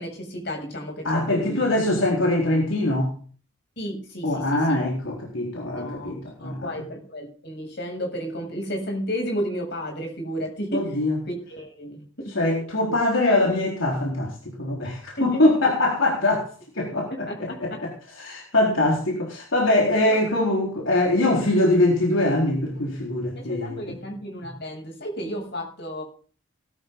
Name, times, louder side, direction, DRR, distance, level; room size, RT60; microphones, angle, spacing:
voice 1, 0.0-1.7 3.8-4.8 5.8-10.9 11.3-12.3 12.8-13.0 15.2-15.4 17.1-17.8 20.0-20.2 23.4-26.0, equal, 55° left, 2 dB, 7.4 m, -33 dB
voice 2, 1.0-3.1 4.2-6.7 10.7-11.2 12.3-16.5 16.7-23.8, left 1 dB, 75° left, -2 dB, 4.4 m, -23 dB
19.5 x 13.0 x 3.9 m, 0.41 s
head